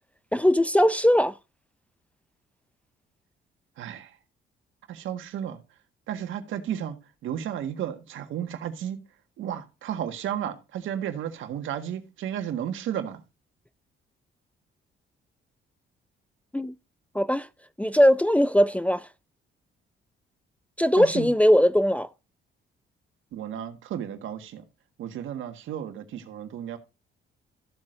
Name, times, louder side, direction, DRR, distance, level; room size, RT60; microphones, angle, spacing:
voice 1, 0.3-1.3 16.5-16.7 17.1-17.5 17.8-19.1 20.8-22.1, equal, 5° left, 0.4 m, -20 dB
voice 2, 3.8-4.2 4.9-5.6 6.1-7.0 7.2-9.0 9.4-13.2 21.0-21.3 23.3-24.6 25.0-26.8, right 10 dB, 80° right, 1.6 m, -33 dB
14.5 x 7.8 x 2.6 m
cardioid pair, 90°, 20 cm